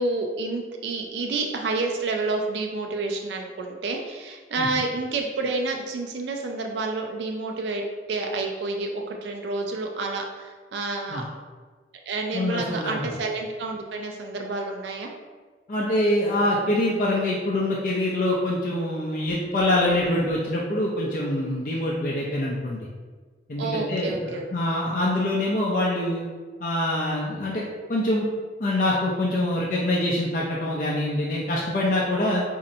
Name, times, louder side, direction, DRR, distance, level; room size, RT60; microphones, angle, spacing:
voice 1, 0.0-11.2 12.1-15.1 23.6-24.4, right 3 dB, 75° right, 2 dB, 0.4 m, -29 dB
voice 2, 12.3-13.1 15.7-22.8 23.5-26.2 26.6-27.6 27.9-28.3 28.6-32.4, left 1 dB, 45° left, -5 dB, 0.5 m, -25 dB
4.1 x 2.7 x 2.6 m, 1.4 s
head